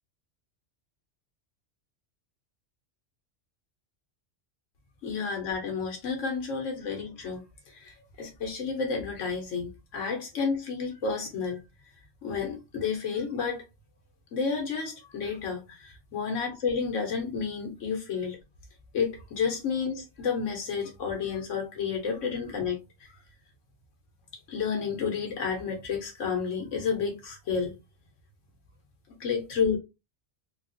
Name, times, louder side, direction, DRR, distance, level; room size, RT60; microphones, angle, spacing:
voice 1, 5.0-11.6 12.2-13.6 14.3-18.4 18.9-23.1 24.5-27.7 29.2-29.8, left 5 dB, 80° left, 1.3 m, -31 dB
3.5 x 2.3 x 2.6 m
omnidirectional pair, 1.3 m